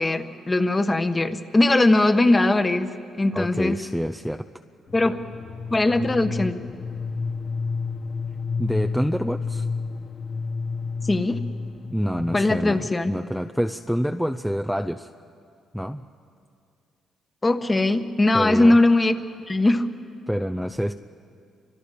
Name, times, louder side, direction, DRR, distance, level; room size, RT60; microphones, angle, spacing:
voice 1, 0.0-2.9 3.2-3.8 4.9-5.2 5.7-6.5 11.0-11.4 12.3-13.1 17.4-19.2 19.5-19.9, left 2 dB, 20° left, 8 dB, 1.3 m, -20 dB
voice 2, 3.3-4.4 8.6-9.7 11.9-15.1 15.7-16.1 18.3-18.8 20.3-20.9, equal, ahead, 6 dB, 0.6 m, -27 dB
sound 1, 4.9-12.7, left 4 dB, 50° left, 1.4 m, -30 dB
29.5 x 25.0 x 5.1 m, 2.4 s
cardioid pair, 90°, 0 cm